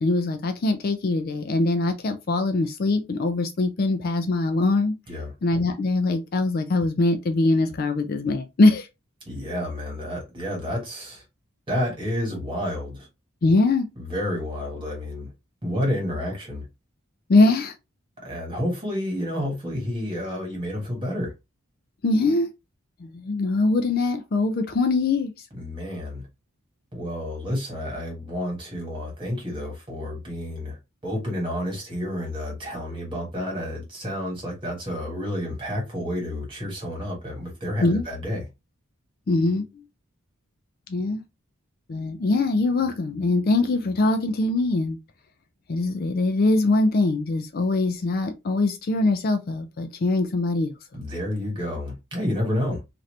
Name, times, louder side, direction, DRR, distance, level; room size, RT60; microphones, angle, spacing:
voice 1, 0.0-5.0 5.4-8.9 13.4-13.9 17.3-17.7 22.0-22.5 23.0-25.3 37.8-38.0 39.3-39.6 40.9-41.2 41.9-45.0 45.7-50.7, left 2 dB, 45° left, 0.4 m, -22 dB
voice 2, 9.2-11.2 11.7-13.1 14.0-15.3 15.6-16.6 18.2-21.3 25.5-26.3 26.9-38.5 50.9-52.8, left 1 dB, 25° right, 1.6 m, -30 dB
2.8 x 2.5 x 3.1 m
head